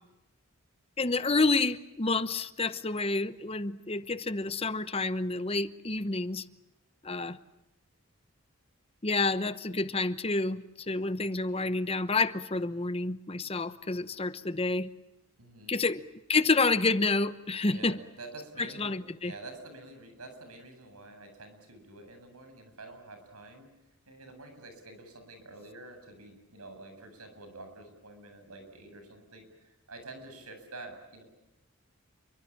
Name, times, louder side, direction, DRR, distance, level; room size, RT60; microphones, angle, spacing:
voice 1, 1.0-6.4 7.0-7.4 9.0-14.9 15.7-18.0 18.6-19.3, left 3 dB, 25° left, 0.9 m, -29 dB
voice 2, 15.4-15.8 17.6-23.7 24.1-31.2, right 2 dB, 90° right, 8.0 m, -48 dB
29.0 x 24.0 x 7.4 m
head